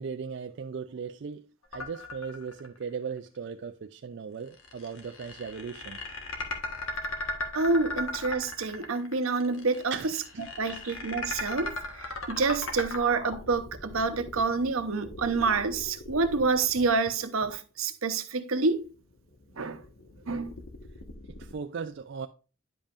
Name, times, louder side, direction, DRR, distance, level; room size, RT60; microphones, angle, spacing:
voice 1, 0.0-6.0 9.9-10.1 10.7-10.8 21.4-22.3, right 6 dB, 55° right, 0.3 m, -37 dB
sound 1, 1.7-2.8 3.2-3.3 4.5-17.5 18.7-21.5, left 2 dB, 75° left, 1.4 m, -38 dB
voice 2, 7.5-9.9 10.4-11.7 12.3-18.8 19.5-19.8 20.3-20.5, right 4 dB, 80° right, 0.8 m, -27 dB
10.0 x 5.3 x 2.5 m
head